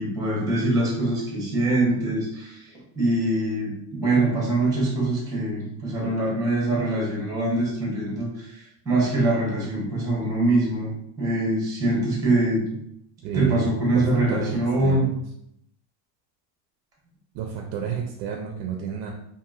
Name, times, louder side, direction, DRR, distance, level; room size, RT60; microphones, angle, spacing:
voice 1, 0.0-10.9 11.2-12.8 13.3-15.1, right 2 dB, 5° right, -4 dB, 0.9 m, -24 dB
voice 2, 13.2-13.6 13.9-15.2 17.3-19.1, right 8 dB, 55° right, 1 dB, 0.5 m, -31 dB
2.8 x 2.7 x 2.4 m, 0.74 s
cardioid pair, 150°, 50 cm